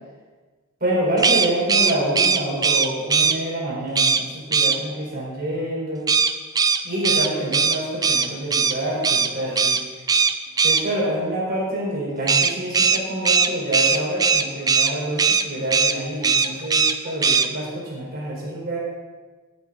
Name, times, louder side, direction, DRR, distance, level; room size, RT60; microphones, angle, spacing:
voice 1, 0.8-6.1 6.8-9.8 10.6-18.8, right 1 dB, 45° right, -4 dB, 4.3 m, -27 dB
sound 1, 1.2-3.4 3.9-4.2 4.5-4.8 6.1-8.7 9.0-9.3 9.5-9.8 10.1-10.8 12.3-14.9 15.2-15.4 15.7-15.9 16.2-16.9 17.2-17.5, right 5 dB, 15° right, 0.4 m, -19 dB
17.5 x 8.5 x 4.1 m, 1.4 s
head